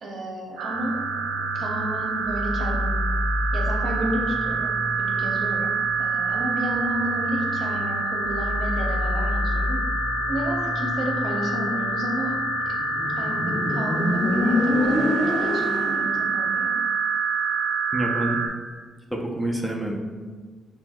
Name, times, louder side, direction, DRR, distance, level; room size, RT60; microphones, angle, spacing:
voice 1, 0.0-1.0 1.5-2.9 3.5-4.7 5.0-5.7 6.0-9.8 10.3-12.4 12.7-12.8 13.2-16.7, right 1 dB, 60° right, -1 dB, 0.8 m, -31 dB
sound 1, 0.6-18.5, right 3 dB, 85° right, 0.4 m, -27 dB
sound 2, 0.7-12.7, left 2 dB, 40° left, 0.4 m, -32 dB
Motorcycle, 12.7-16.2, left 2 dB, 65° left, 0.8 m, -25 dB
voice 2, 17.9-18.4 19.1-20.0, right 1 dB, ahead, 0 dB, 0.6 m, -27 dB
5.6 x 2.2 x 2.3 m, 1.5 s
supercardioid pair, 55°, 0 cm